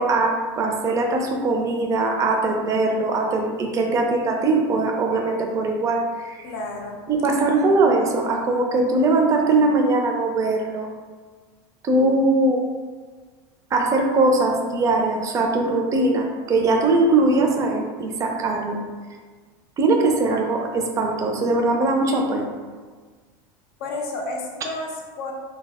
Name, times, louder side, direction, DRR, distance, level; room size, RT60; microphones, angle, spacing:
voice 1, 0.0-6.4 7.1-10.9 11.8-12.6 13.7-18.8 19.8-22.5, right 2 dB, 25° right, 2 dB, 0.4 m, -21 dB
voice 2, 6.4-7.1 23.8-25.3, left 2 dB, 75° left, 1 dB, 0.6 m, -31 dB
2.2 x 2.1 x 3.4 m, 1.5 s
supercardioid pair, 120°, 13 cm